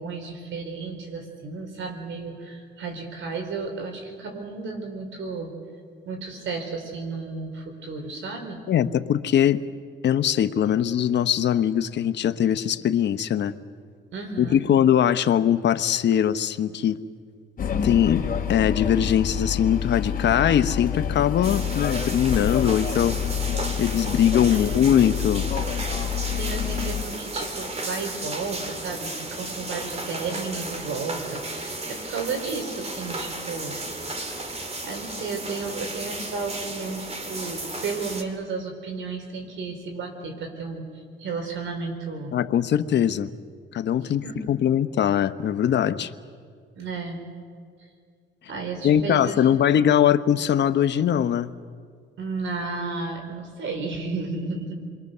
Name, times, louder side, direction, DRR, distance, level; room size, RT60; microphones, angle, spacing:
voice 1, 0.0-5.6 6.1-8.6 14.1-14.6 24.5-24.9 26.4-33.8 34.8-40.8 41.2-42.4 44.0-44.4 46.7-47.2 48.5-49.8 52.2-54.7, right 4 dB, 75° right, 4 dB, 4.3 m, -33 dB
voice 2, 8.7-9.6 10.0-13.5 14.4-17.0 17.8-18.2 18.5-23.2 23.8-25.4 42.3-43.3 43.7-46.1 48.8-51.5, left 9 dB, 60° left, 11 dB, 1.0 m, -21 dB
sound 1, 17.6-27.0, left 8 dB, 45° left, 2.5 m, -28 dB
sound 2, 21.4-38.2, right 2 dB, 30° right, 2.6 m, -34 dB
27.5 x 22.0 x 6.8 m, 2.1 s
cardioid pair, 90°, 20 cm